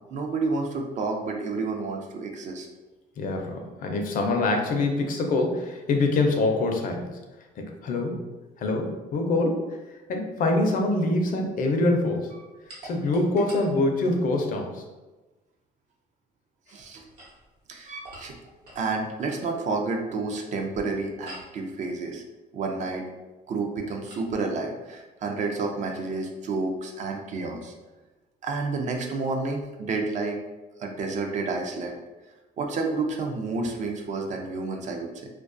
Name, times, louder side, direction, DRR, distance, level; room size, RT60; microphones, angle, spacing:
voice 1, 0.1-2.7 16.7-17.0 17.7-18.3 18.8-22.2 22.5-23.0 23.5-27.7 28.4-30.4 30.8-32.0 32.6-35.3, right 3 dB, 45° right, 2 dB, 0.4 m, -30 dB
voice 2, 3.2-7.2 7.6-8.2 8.6-9.8 10.1-12.3 12.8-14.8, left 2 dB, 55° left, 3 dB, 0.4 m, -25 dB
sound 1, 12.7-14.5 16.9-18.9 21.2-21.6 24.1-24.3, right 1 dB, 70° right, 0.9 m, -46 dB
2.3 x 2.3 x 2.5 m, 1.1 s
cardioid pair, 110°, 17 cm